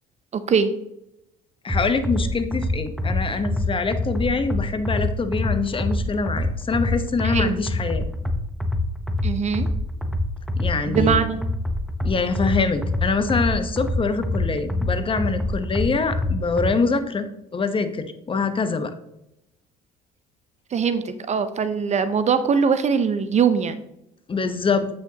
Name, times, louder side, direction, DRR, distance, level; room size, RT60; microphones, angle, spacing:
voice 1, 0.3-0.7 7.2-7.5 9.2-9.7 10.9-11.4 20.7-23.8, right 6 dB, 40° right, 12 dB, 0.7 m, -22 dB
voice 2, 1.6-8.1 10.6-11.1 12.0-17.3 17.5-18.9 24.3-24.9, left 4 dB, 30° left, 9 dB, 1.0 m, -24 dB
sound 1, 1.7-16.7, left 1 dB, ahead, 0.8 m, -26 dB
8.1 x 6.4 x 2.9 m, 0.84 s
hypercardioid pair, 70°, 19 cm